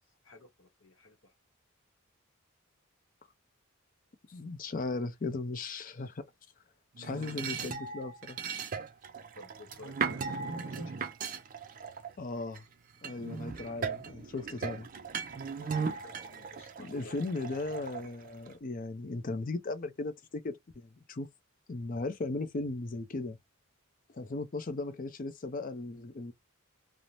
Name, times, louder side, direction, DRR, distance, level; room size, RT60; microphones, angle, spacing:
voice 1, 0.2-1.3 5.8-6.1 9.3-10.9 15.6-17.7, left 1 dB, 65° left, 0.9 m, -53 dB
voice 2, 4.3-6.2 7.0-8.4 12.2-12.6 13.0-14.9 16.8-21.3 21.7-23.4 24.1-26.3, left 2 dB, 40° left, 0.5 m, -37 dB
sound 1, 6.9-12.6 13.0-18.5, right 5 dB, 40° right, 0.4 m, -38 dB
2.5 x 2.0 x 3.1 m
head